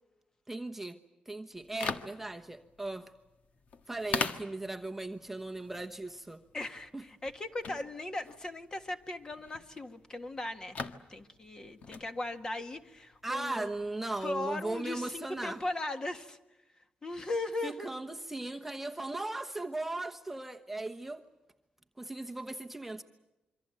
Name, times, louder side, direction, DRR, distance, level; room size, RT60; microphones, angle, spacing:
voice 1, 0.5-1.0 1.3-3.1 3.9-6.4 6.9-7.0 13.2-15.6 17.6-21.2 22.0-23.0, right 2 dB, 10° right, 4 dB, 1.0 m, -37 dB
sound 1, 1.5-15.7, left 5 dB, 55° left, 1.6 m, -43 dB
voice 2, 6.5-10.8 11.1-13.7 14.2-16.4 17.0-17.9, left 2 dB, 25° left, 7 dB, 1.7 m, -38 dB
27.0 x 24.5 x 7.8 m, 0.99 s
wide cardioid pair, 150°, 3 cm